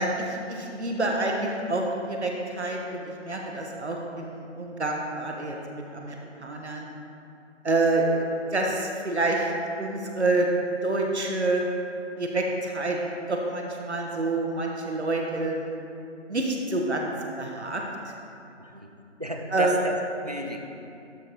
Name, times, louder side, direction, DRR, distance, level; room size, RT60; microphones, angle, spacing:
voice 1, 0.0-6.9 7.6-9.5 9.8-10.5 10.8-11.7 12.2-13.0 13.3-15.7 16.3-17.1 17.4-17.8 19.5-19.7, right 2 dB, 65° right, 0 dB, 1.3 m, -27 dB
voice 2, 18.6-18.9 19.2-19.9 20.2-20.6, equal, 35° right, 2 dB, 0.5 m, -33 dB
12.0 x 4.0 x 4.7 m, 2.7 s
figure-of-eight pair, 165°, 37 cm